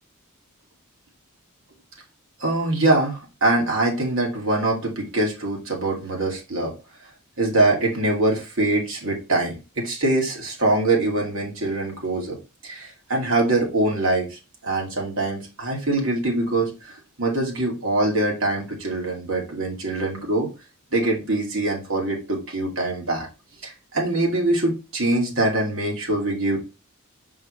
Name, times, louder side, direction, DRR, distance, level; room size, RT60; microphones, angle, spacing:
voice 1, 2.4-6.7 7.4-12.4 12.6-20.5 20.9-23.3 23.6-26.6, right 2 dB, 65° right, 0 dB, 2.5 m, -23 dB
6.2 x 5.4 x 3.2 m, 0.29 s
head